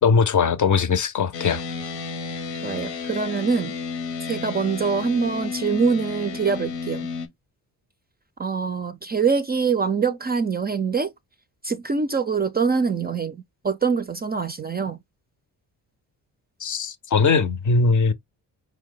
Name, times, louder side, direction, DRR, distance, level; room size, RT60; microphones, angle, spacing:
voice 1, 0.0-1.6 16.6-18.1, left 5 dB, 45° left, 0.6 m, -20 dB
sound 1, 1.3-7.3, left 5 dB, 75° left, 0.9 m, -32 dB
voice 2, 2.6-3.7 4.2-7.1 8.4-11.1 11.6-15.0, right 5 dB, 25° right, 0.4 m, -24 dB
4.5 x 2.1 x 3.8 m
supercardioid pair, 50°, 44 cm